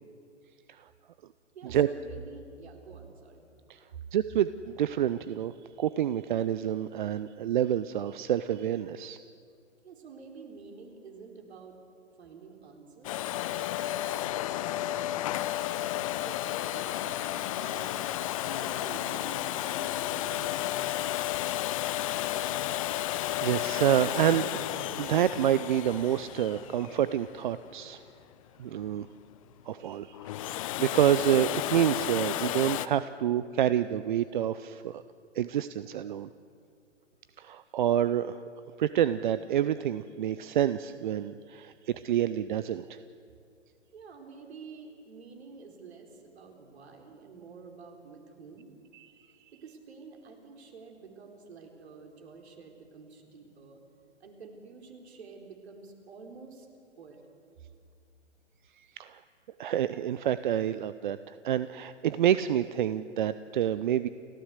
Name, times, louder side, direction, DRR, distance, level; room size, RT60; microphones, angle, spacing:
voice 1, 1.5-3.5 9.8-11.8 12.2-13.2 14.0-17.9 18.4-20.8 43.9-48.7 49.5-53.8 54.2-56.7 57.0-57.2, right 5 dB, 60° right, 3 dB, 4.2 m, -49 dB
voice 2, 4.1-5.5 5.8-9.2 22.4-28.0 28.6-29.1 29.7-35.0 35.3-36.3 37.4-38.4 38.8-43.0 48.9-49.1 59.0-59.2 59.6-64.1, right 10 dB, 40° right, 14 dB, 0.6 m, -28 dB
Domestic sounds home sounds, 13.0-27.8 30.1-32.9, left 14 dB, 30° left, 0.6 m, -32 dB
30.0 x 14.5 x 8.2 m, 2.4 s
figure-of-eight pair, 125°, 37 cm